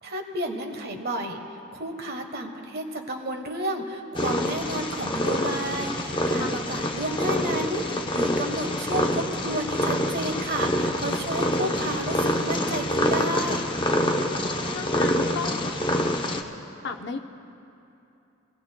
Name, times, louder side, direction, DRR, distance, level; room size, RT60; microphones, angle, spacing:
voice 1, 0.0-1.4 1.7-13.7, right 1 dB, 50° right, 4 dB, 1.2 m, -31 dB
Purr, 4.1-16.4, left 1 dB, 25° left, 0.7 m, -26 dB
voice 2, 14.7-15.7 16.8-17.2, left 5 dB, 55° left, 5 dB, 0.7 m, -33 dB
24.5 x 17.5 x 2.2 m, 2.8 s
head